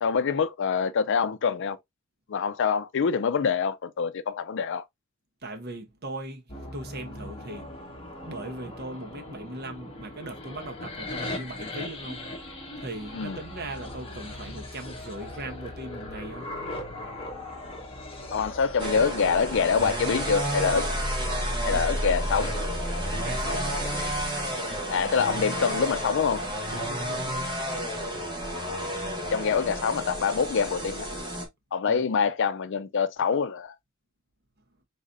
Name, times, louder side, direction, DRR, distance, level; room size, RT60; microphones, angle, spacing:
voice 1, 0.0-1.8 2.3-4.8 13.1-13.4 18.3-20.9 21.6-22.5 24.9-26.4 28.5-28.9 29.3-31.1 31.7-33.7, left 6 dB, 60° left, 0.4 m, -25 dB
voice 2, 5.4-7.7 8.2-12.3 12.8-16.5 23.1-23.8 26.7-27.6 31.9-32.1, right 2 dB, 50° right, 1.0 m, -39 dB
sound 1, 6.5-24.3, left 1 dB, 25° left, 1.4 m, -36 dB
sound 2, 18.8-31.5, equal, 25° right, 1.5 m, -32 dB
4.0 x 3.9 x 2.6 m
head